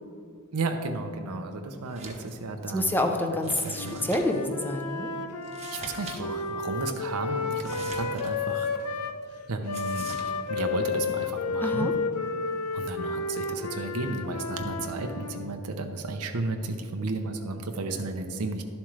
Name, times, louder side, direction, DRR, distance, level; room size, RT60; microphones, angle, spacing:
voice 1, 0.5-3.0 3.6-4.1 5.7-8.7 9.5-11.9 12.7-18.6, right 3 dB, 90° right, 5 dB, 0.7 m, -33 dB
sound 1, 1.9-2.3 2.6-2.7 3.4-4.5 5.4-6.2 6.5-6.6 7.6-8.7 9.7-10.3, right 4 dB, 30° right, 1.0 m, -43 dB
voice 2, 2.7-5.1 11.6-11.9, left 1 dB, 10° left, 4 dB, 0.6 m, -27 dB
Wind instrument woodwind instrument, 3.7-9.2 9.6-15.5, left 4 dB, 90° left, 0.7 m, -32 dB
11.5 x 7.3 x 3.2 m, 2.3 s
head